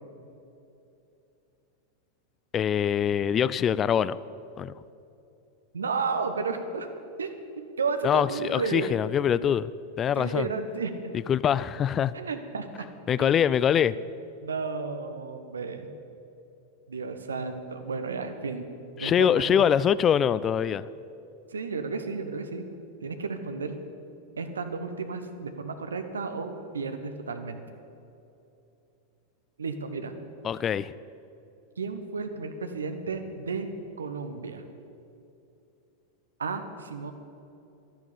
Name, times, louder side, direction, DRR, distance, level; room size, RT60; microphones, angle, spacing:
voice 1, 2.5-4.2 4.6-4.7 8.0-9.7 10.0-10.5 11.3-12.1 13.1-14.0 19.0-20.9 30.4-30.9, left 8 dB, 25° left, 18 dB, 0.3 m, -24 dB
voice 2, 5.7-6.9 7.2-9.0 10.2-11.1 12.1-12.8 13.2-13.5 14.4-15.9 16.9-18.7 19.0-19.7 21.5-22.7 23.0-23.8 24.4-27.6 29.6-30.1 31.8-33.7 34.0-34.6 36.4-37.1, right 4 dB, 70° right, 8 dB, 1.1 m, -33 dB
11.5 x 10.5 x 8.5 m, 2.8 s
figure-of-eight pair, 90°, 0 cm